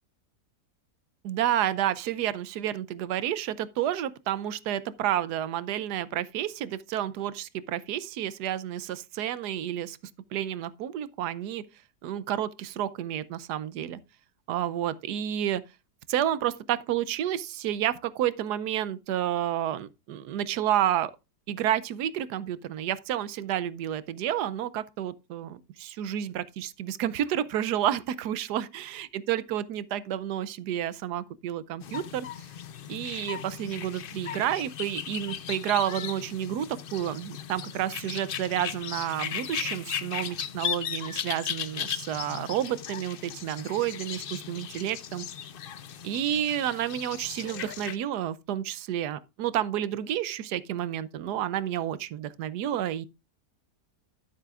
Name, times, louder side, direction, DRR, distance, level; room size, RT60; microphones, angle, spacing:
voice 1, 1.2-10.0 10.3-11.6 12.0-14.0 14.5-15.6 16.1-21.1 21.5-32.3 32.9-45.3 46.0-53.1, right 11 dB, 80° right, 1.2 m, -30 dB
sound 1, 31.8-48.0, left 9 dB, 65° left, 0.5 m, -37 dB
12.5 x 7.6 x 2.4 m
omnidirectional pair, 1.7 m